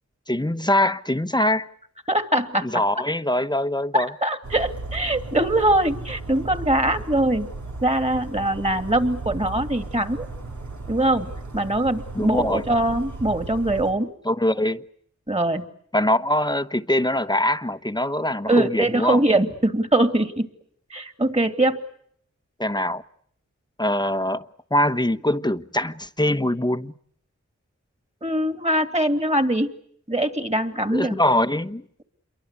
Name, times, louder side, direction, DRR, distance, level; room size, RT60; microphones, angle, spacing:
voice 1, 0.3-1.7 2.6-4.1 12.1-12.6 14.2-14.8 15.9-19.2 22.6-23.0 23.8-24.5 24.7-26.9 30.9-31.8, left 1 dB, 15° left, 1.1 m, -23 dB
voice 2, 2.1-2.7 3.9-7.5 7.8-10.3 10.9-14.1 15.3-15.6 18.5-20.5 20.9-21.8 28.2-29.7 30.1-31.2, right 1 dB, 20° right, 2.9 m, -22 dB
Bird vocalization bird call bird song, 4.4-13.9, right 3 dB, 75° right, 2.9 m, -36 dB
28.0 x 23.0 x 8.4 m
cardioid pair, 45°, 30 cm